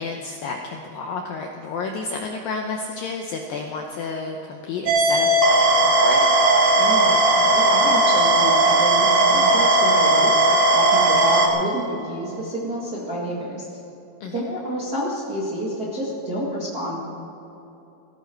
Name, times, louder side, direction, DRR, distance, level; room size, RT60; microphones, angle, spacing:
voice 1, 0.0-5.4 5.8-6.3 14.2-14.4, left 4 dB, 80° left, 2 dB, 2.1 m, -30 dB
sound 1, 4.9-11.5, right 2 dB, 60° right, 2.3 m, -17 dB
voice 2, 6.7-7.2 7.5-10.5 10.7-13.7 14.3-17.0, equal, 35° right, -6 dB, 1.5 m, -29 dB
17.5 x 15.5 x 4.6 m, 2.9 s
omnidirectional pair, 5.1 m